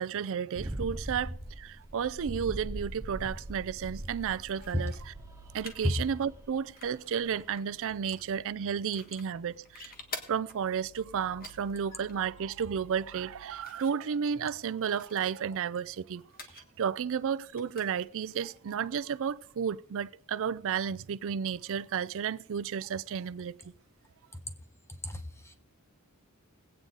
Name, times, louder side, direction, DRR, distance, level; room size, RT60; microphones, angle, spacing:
voice 1, 0.0-4.9 5.5-9.9 10.3-16.2 16.5-23.5, right 7 dB, 65° right, 0.4 m, -32 dB
sound 1, 0.6-7.0 7.3-7.5, right 1 dB, 15° right, 0.8 m, -41 dB
sound 2, 2.3-13.5, right 3 dB, 60° left, 1.9 m, -58 dB
sound 3, 4.5-19.7, left 4 dB, 40° left, 1.5 m, -51 dB
voice 2, 25.0-25.5, left 1 dB, 10° left, 1.1 m, -30 dB
20.5 x 8.7 x 3.9 m
head